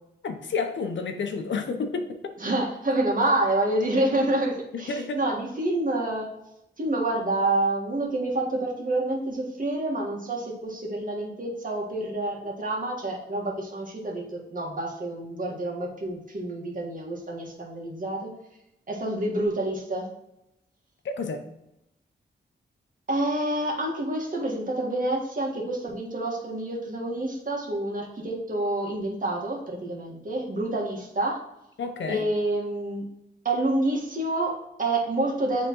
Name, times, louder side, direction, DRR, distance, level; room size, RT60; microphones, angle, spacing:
voice 1, 0.2-2.2 4.7-5.2 21.0-21.5 31.8-32.3, left 4 dB, 75° left, 6 dB, 0.8 m, -30 dB
voice 2, 2.4-6.3 6.8-18.3 18.9-20.1 23.1-31.4 32.1-33.0 33.4-35.7, right 2 dB, 45° right, -1 dB, 1.7 m, -28 dB
9.3 x 3.6 x 3.1 m, 0.87 s
cardioid pair, 80°, 19 cm